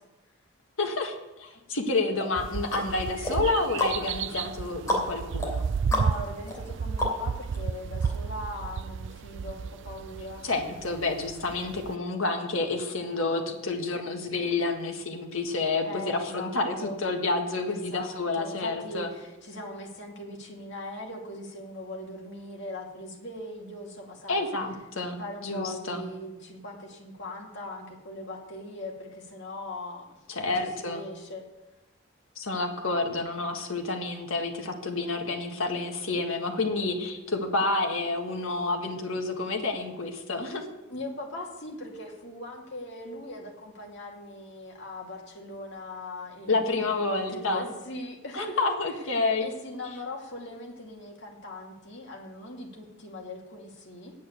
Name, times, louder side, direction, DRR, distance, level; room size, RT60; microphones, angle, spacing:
voice 1, 0.8-5.6 10.4-19.1 24.3-26.0 30.3-31.0 32.3-40.6 46.5-47.6 48.3-49.5, left 3 dB, 75° left, 3 dB, 1.7 m, -29 dB
sound 1, 2.2-7.6 8.0-8.1, left 1 dB, 15° left, 2.9 m, -33 dB
sound 2, 2.4-12.0, right 6 dB, 60° right, 0.4 m, -33 dB
voice 2, 5.9-10.4 15.8-16.5 16.8-17.0 17.7-24.5 25.2-30.1 30.4-31.5 40.9-49.0 49.4-54.1, left 1 dB, 60° left, -1 dB, 2.4 m, -40 dB
9.1 x 8.4 x 8.1 m, 1.0 s
head